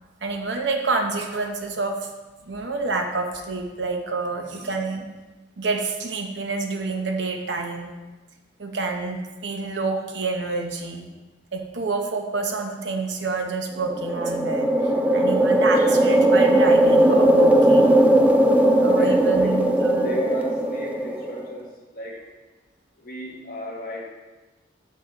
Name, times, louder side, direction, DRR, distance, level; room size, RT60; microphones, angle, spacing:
voice 1, 0.2-2.1 2.5-5.1 5.6-7.9 8.6-11.1 11.5-18.0 18.8-20.2, right 3 dB, 70° right, 4 dB, 0.8 m, -28 dB
voice 2, 4.4-4.7 15.1-15.5 18.7-21.7 21.9-22.2 23.0-24.1, left 1 dB, 50° left, -4 dB, 1.2 m, -35 dB
sound 1, 13.8-21.5, right 1 dB, 10° right, 0.3 m, -18 dB
6.0 x 5.5 x 3.9 m, 1.2 s
head